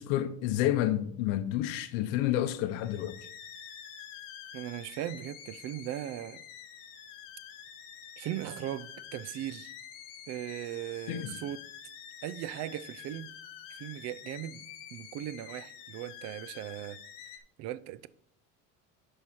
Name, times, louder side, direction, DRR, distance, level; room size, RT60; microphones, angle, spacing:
voice 1, 0.0-3.2 11.1-11.4, left 13 dB, 90° left, 0.7 m, -29 dB
sound 1, 2.6-17.4, left 9 dB, 65° left, 1.4 m, -48 dB
voice 2, 4.5-6.4 8.2-9.7 10.3-11.6 12.2-13.3 13.7-14.7 14.9-17.0 17.6-18.1, right 13 dB, 50° right, 0.4 m, -38 dB
11.0 x 4.8 x 4.3 m
cardioid pair, 150°, 35 cm